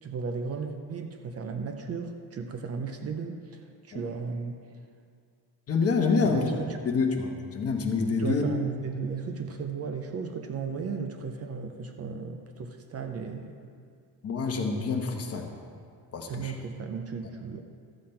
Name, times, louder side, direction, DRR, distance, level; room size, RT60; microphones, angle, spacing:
voice 1, 0.0-4.6 6.2-6.8 8.2-13.6 16.3-17.6, right 5 dB, 40° right, 6 dB, 0.6 m, -35 dB
voice 2, 5.7-6.4 6.8-8.4 14.2-15.4 16.1-16.5, left 4 dB, 35° left, 2 dB, 1.0 m, -27 dB
13.5 x 7.5 x 4.3 m, 2.3 s
cardioid pair, 170°, 40 cm